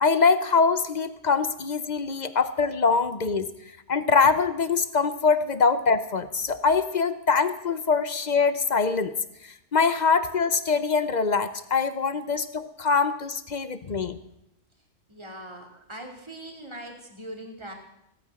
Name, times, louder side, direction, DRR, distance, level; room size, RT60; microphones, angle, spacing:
voice 1, 0.0-3.5 3.9-9.1 9.4-14.2, left 5 dB, 40° left, 12 dB, 0.8 m, -23 dB
voice 2, 15.1-17.7, right 1 dB, 25° right, 1 dB, 2.9 m, -41 dB
16.5 x 9.5 x 7.6 m, 0.82 s
omnidirectional pair, 1.2 m